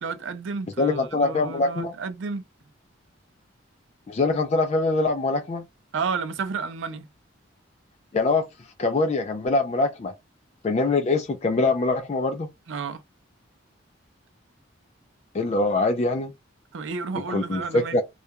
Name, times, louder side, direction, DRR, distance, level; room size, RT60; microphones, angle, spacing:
voice 1, 0.0-2.4 5.9-7.1 12.7-13.0 16.7-18.0, right 5 dB, 70° right, 0.4 m, -31 dB
voice 2, 0.8-1.9 4.1-5.7 8.1-8.4 8.8-10.1 10.6-12.5 15.3-16.3 17.3-18.0, left 3 dB, 35° left, 0.3 m, -23 dB
2.3 x 2.2 x 2.7 m
head